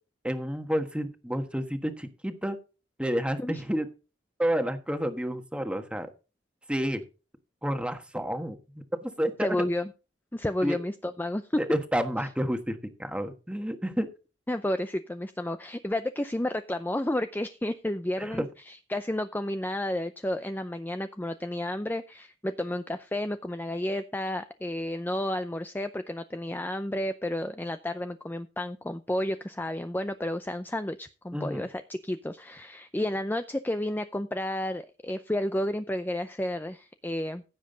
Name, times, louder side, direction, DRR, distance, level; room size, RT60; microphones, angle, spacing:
voice 1, 0.2-2.6 3.0-3.9 4.4-6.1 6.7-7.0 7.6-8.6 9.0-9.6 10.6-10.8 11.6-14.1 18.2-18.5 31.3-31.6, equal, 5° right, 7 dB, 1.4 m, -30 dB
voice 2, 9.4-9.9 10.3-11.4 14.5-37.4, left 1 dB, 10° left, 10 dB, 0.5 m, -31 dB
15.5 x 7.4 x 3.9 m, 0.32 s
head